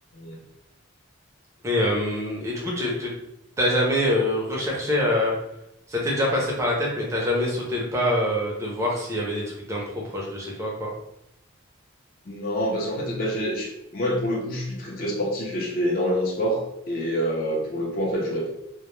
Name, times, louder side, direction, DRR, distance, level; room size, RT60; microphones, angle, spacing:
voice 1, 1.6-3.1 3.6-5.3 5.9-10.9, left 1 dB, 15° right, -3 dB, 0.5 m, -25 dB
voice 2, 12.3-18.5, equal, 45° left, -2 dB, 0.5 m, -27 dB
2.1 x 2.0 x 3.0 m, 0.83 s
head